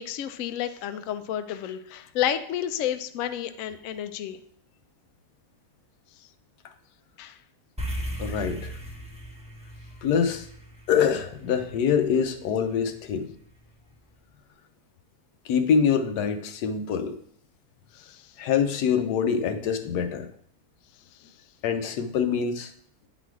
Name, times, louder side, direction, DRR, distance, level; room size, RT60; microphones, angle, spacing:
voice 1, 0.0-4.4 7.2-7.4 18.0-18.2, left 10 dB, 70° left, 10 dB, 0.8 m, -31 dB
sound 1, 7.8-12.3, right 1 dB, 5° right, 1.0 m, -37 dB
voice 2, 8.2-8.7 10.0-10.5 10.9-13.3 15.4-17.2 18.4-20.3 21.6-22.7, left 7 dB, 85° left, 7 dB, 1.3 m, -25 dB
9.1 x 4.1 x 4.7 m, 0.66 s
omnidirectional pair, 1.7 m